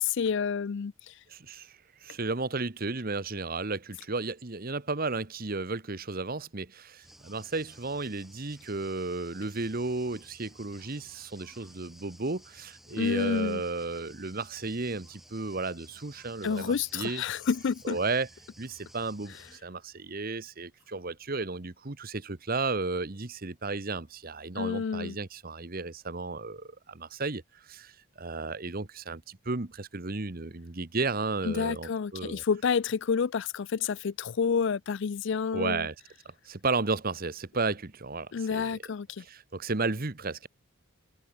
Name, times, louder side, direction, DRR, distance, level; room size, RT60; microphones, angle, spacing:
voice 1, 0.0-1.1 12.9-13.6 16.4-18.0 24.6-25.2 31.4-35.9 38.3-39.2, left 6 dB, 55° left, 0.4 m, -29 dB
voice 2, 1.3-17.2 17.8-18.3 18.6-32.4 35.5-35.9 36.2-38.8 39.2-40.5, right 3 dB, 40° right, 1.1 m, -33 dB
sound 1, 7.0-19.6, equal, ahead, 4.1 m, -55 dB
head